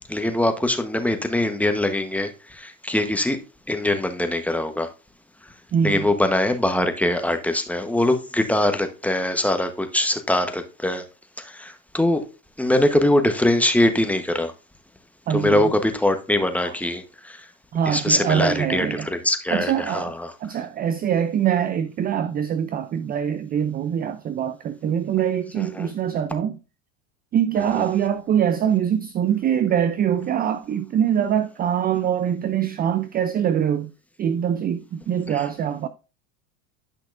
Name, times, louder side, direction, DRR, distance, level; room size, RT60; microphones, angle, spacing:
voice 1, 0.1-3.4 3.7-4.9 5.8-11.0 11.4-12.2 12.6-14.5 15.3-17.4 17.9-20.1 25.6-25.9 27.8-27.9, left 1 dB, 5° left, 0.9 m, -22 dB
voice 2, 5.7-6.1 15.3-15.7 16.7-16.8 17.7-19.1 19.5-20.1 20.4-26.6 27.3-33.9 34.2-35.9, right 9 dB, 25° right, 0.4 m, -23 dB
10.5 x 5.8 x 2.5 m
supercardioid pair, 105°, 39 cm